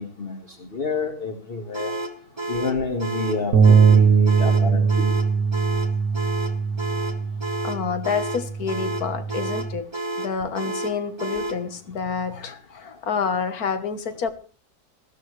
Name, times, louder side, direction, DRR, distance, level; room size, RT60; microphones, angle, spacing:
voice 1, 0.0-1.9 2.5-5.1, left 4 dB, 35° left, 2 dB, 2.0 m, -29 dB
sound 1, 1.7-11.7, right 1 dB, 20° right, 1.1 m, -31 dB
sound 2, 3.5-9.8, right 6 dB, 55° right, 1.6 m, -20 dB
voice 2, 7.6-9.9 10.2-14.3, left 6 dB, 60° left, 10 dB, 1.8 m, -28 dB
19.5 x 14.5 x 3.3 m, 0.37 s
omnidirectional pair, 1.8 m